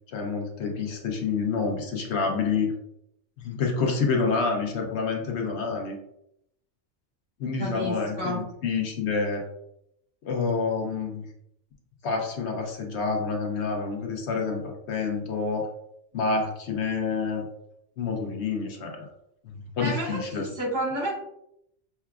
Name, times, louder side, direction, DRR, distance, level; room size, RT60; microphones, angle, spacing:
voice 1, 0.1-2.7 3.4-6.0 7.4-9.5 10.3-11.3 12.0-15.7 16.1-17.5 18.0-19.1 19.4-20.5, left 4 dB, 65° left, 2 dB, 1.0 m, -28 dB
voice 2, 7.6-8.5 19.8-21.1, right 1 dB, 85° right, -7 dB, 2.1 m, -31 dB
5.6 x 2.2 x 2.3 m, 0.77 s
omnidirectional pair, 1.3 m